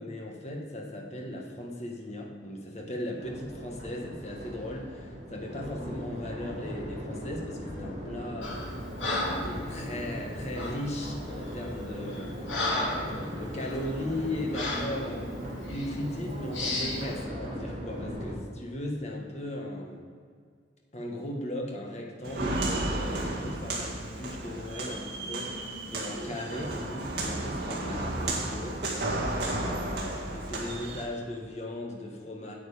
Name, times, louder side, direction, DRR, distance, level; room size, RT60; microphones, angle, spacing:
voice 1, 0.0-8.6 9.1-15.3 15.7-20.0 20.9-32.6, left 1 dB, 35° left, 0 dB, 1.4 m, -37 dB
Crowd, 3.2-18.3, equal, 40° right, 2.5 m, -38 dB
Breathing, 8.4-8.7 9.0-9.5 10.5-10.8 11.5-11.7 12.1-13.1 13.6-13.8 14.5-14.9 15.7-15.9 16.5-17.0, left 2 dB, 85° left, 2.1 m, -32 dB
Walk footsteps, 22.2-31.0, right 2 dB, 60° right, 1.9 m, -33 dB
8.6 x 8.0 x 5.0 m, 2.1 s
head